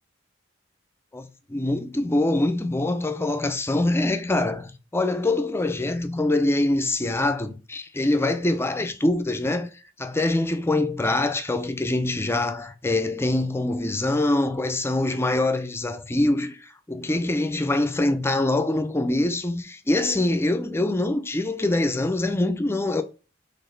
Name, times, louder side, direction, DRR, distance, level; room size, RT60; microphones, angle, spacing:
voice 1, 1.1-9.7 10.0-23.0, left 2 dB, 15° left, 0.5 m, -24 dB
4.0 x 3.5 x 3.8 m
head